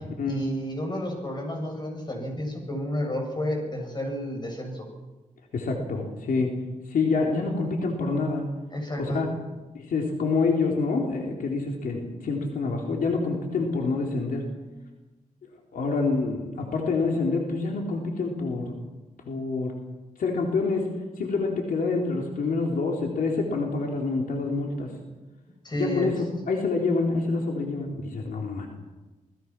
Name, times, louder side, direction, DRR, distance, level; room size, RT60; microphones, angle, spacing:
voice 1, 0.3-4.9 8.7-9.3 25.6-26.1, equal, 30° left, 3 dB, 7.6 m, -31 dB
voice 2, 5.5-6.5 6.9-8.5 9.0-9.3 9.7-14.4 15.7-18.8 19.3-19.7 20.2-20.8 21.2-24.9 25.7-26.1 26.5-28.7, left 3 dB, 85° left, 1 dB, 3.9 m, -27 dB
27.5 x 20.0 x 6.2 m, 1.2 s
wide cardioid pair, 100°, 14 cm